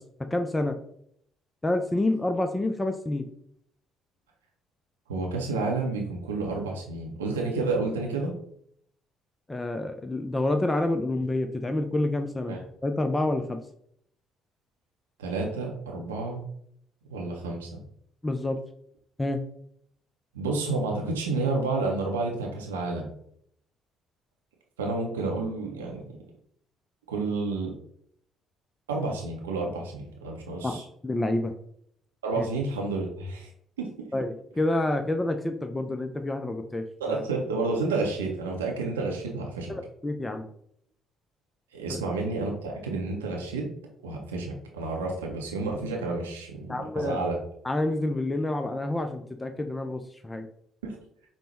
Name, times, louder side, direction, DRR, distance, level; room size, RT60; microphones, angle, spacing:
voice 1, 0.3-0.8 1.6-3.3 9.5-12.6 12.8-13.6 18.2-18.6 19.2-19.4 30.6-31.5 32.4-32.5 34.1-37.2 39.7-40.5 41.9-42.0 46.7-47.2 47.6-50.5, left 2 dB, 15° left, 6 dB, 0.4 m, -28 dB
voice 2, 5.1-8.4 12.5-12.6 15.2-16.4 17.1-17.8 20.3-23.1 24.8-26.2 27.1-27.7 28.9-30.9 32.2-33.5 33.8-34.1 37.0-39.7 41.7-43.7 44.0-47.4 50.8-51.0, right 3 dB, 80° right, 0 dB, 0.5 m, -30 dB
5.1 x 2.1 x 2.9 m, 0.68 s
figure-of-eight pair, 45°, 0 cm